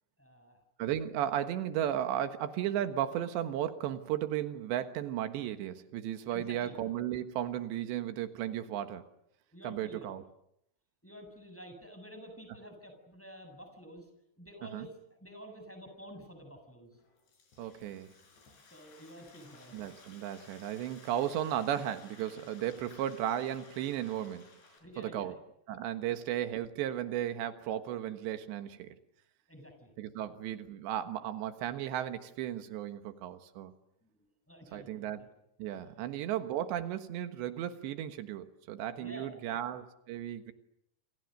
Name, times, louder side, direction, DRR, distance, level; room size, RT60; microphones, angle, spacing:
voice 1, 0.2-0.6 6.3-6.7 9.5-10.1 11.0-14.1 14.4-16.9 18.7-19.7 24.8-25.3 26.0-26.2 29.5-29.9 34.0-35.3 39.0-39.6, equal, 5° left, 5 dB, 6.9 m, -50 dB
voice 2, 0.8-9.0 9.6-10.2 14.7-14.9 17.6-18.1 19.7-24.5 25.0-25.4 25.7-29.0 30.0-33.7 34.7-35.3 35.6-40.5, right 11 dB, 90° right, 8 dB, 3.6 m, -35 dB
Frying (food), 16.9-24.8, left 4 dB, 75° left, 8.0 m, -57 dB
28.0 x 27.5 x 6.6 m, 0.77 s
omnidirectional pair, 4.9 m